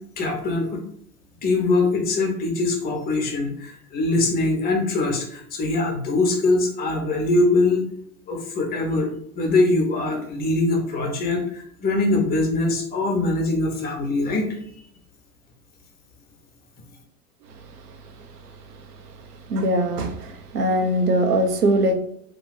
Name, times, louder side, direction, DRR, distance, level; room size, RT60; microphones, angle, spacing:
voice 1, 0.2-0.8 1.4-7.8 8.3-9.1 9.3-14.5, left 2 dB, 20° left, 1 dB, 0.7 m, -22 dB
voice 2, 19.5-21.9, right 1 dB, 90° right, 5 dB, 0.6 m, -21 dB
2.7 x 2.1 x 3.1 m, 0.68 s
hypercardioid pair, 95°, 45 cm